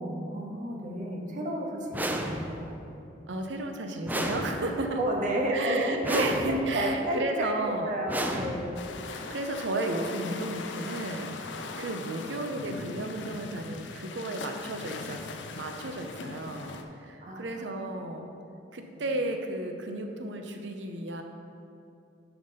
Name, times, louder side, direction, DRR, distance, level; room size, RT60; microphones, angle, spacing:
voice 1, 0.0-2.7 5.0-6.3 6.7-7.5 7.9-8.8 17.2-17.4 18.9-19.0, equal, 45° right, 0 dB, 0.9 m, -31 dB
sound 1, 1.9-2.8 4.1-5.0 6.0-6.8 8.1-9.0, right 1 dB, 10° right, 0.4 m, -33 dB
voice 2, 3.3-5.0 5.5-7.9 9.1-15.2 15.6-18.3 18.7-21.2, right 2 dB, 70° right, 5 dB, 0.7 m, -33 dB
sound 2, 8.8-16.8, left 4 dB, 70° left, 0.5 m, -40 dB
5.9 x 5.1 x 5.5 m, 2.6 s
head